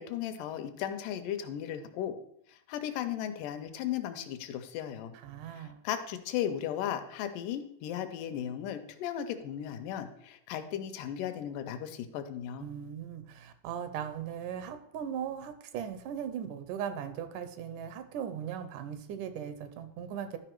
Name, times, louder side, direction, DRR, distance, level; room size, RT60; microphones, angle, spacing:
voice 1, 0.0-2.2 2.5-5.1 5.5-12.7, left 10 dB, 85° left, 8 dB, 2.3 m, -36 dB
voice 2, 5.2-5.8 12.6-20.4, right 8 dB, 80° right, 10 dB, 2.1 m, -38 dB
12.5 x 5.0 x 4.6 m, 0.74 s
omnidirectional pair, 3.8 m